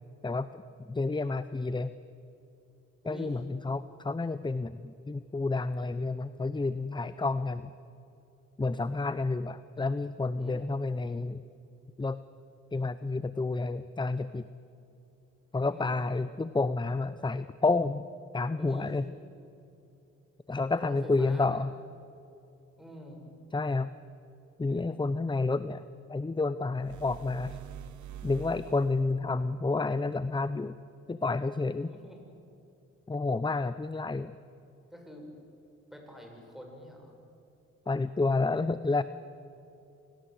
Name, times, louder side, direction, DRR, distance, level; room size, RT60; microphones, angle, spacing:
voice 1, 0.2-0.6 0.9-1.9 3.1-7.7 8.6-11.4 12.0-12.2 12.7-14.5 15.5-18.1 18.3-19.0 20.5-21.7 23.5-23.9 24.6-25.8 26.1-27.6 28.2-30.8 31.1-31.9 33.1-34.3 37.9-39.0, left 3 dB, 15° left, 14 dB, 0.7 m, -30 dB
voice 2, 3.0-3.3 10.4-10.6 15.7-16.0 18.6-18.9 20.7-21.7 22.8-23.2 31.9-32.2 34.9-35.3 35.9-37.2, equal, ahead, 1 dB, 7.5 m, -46 dB
sound 1, 26.7-29.2, right 9 dB, 75° right, 0.9 m, -45 dB
27.5 x 18.0 x 8.1 m, 2.7 s
cardioid pair, 65°, 30 cm